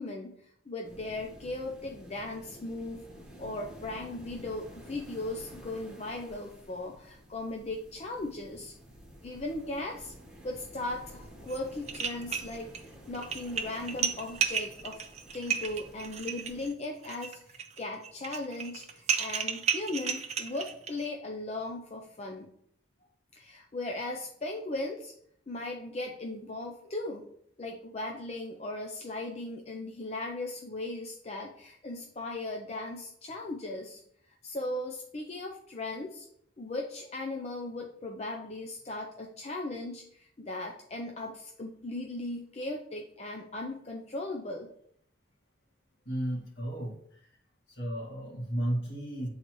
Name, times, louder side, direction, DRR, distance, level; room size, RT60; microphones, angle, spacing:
voice 1, 0.0-3.0 3.4-8.7 9.2-10.1 10.4-15.0 15.3-22.5 23.4-25.1 25.5-27.2 27.6-34.0 34.4-36.3 36.6-44.7, left 2 dB, 35° left, 1 dB, 0.5 m, -38 dB
sound 1, 0.8-16.7, equal, 5° right, 1.2 m, -51 dB
sound 2, 11.5-11.6 11.9-12.8 13.1-21.1, right 7 dB, 35° right, 0.5 m, -33 dB
voice 2, 46.1-47.4 47.7-49.3, right 1 dB, 60° left, -2 dB, 1.8 m, -34 dB
8.8 x 3.9 x 3.1 m, 0.70 s
head